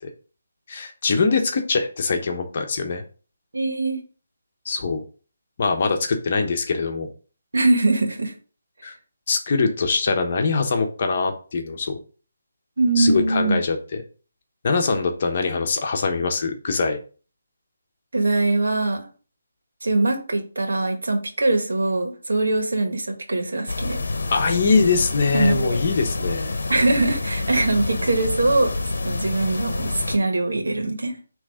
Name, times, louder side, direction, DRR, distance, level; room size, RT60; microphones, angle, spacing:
voice 1, 0.7-3.0 4.6-5.0 5.6-7.1 8.8-8.9 9.3-12.0 13.0-14.0 14.6-17.0 24.3-26.6, left 4 dB, 40° left, 4 dB, 1.0 m, -23 dB
voice 2, 3.5-4.0 7.5-8.3 12.8-13.6 18.1-19.1 19.8-24.0 25.3-25.8 26.7-28.7 29.0-31.2, right 2 dB, 85° right, 4 dB, 1.8 m, -22 dB
sound 1, 23.7-30.2, left 2 dB, 75° left, 0.9 m, -28 dB
6.1 x 3.2 x 5.0 m, 0.38 s
hypercardioid pair, 170°, 0 cm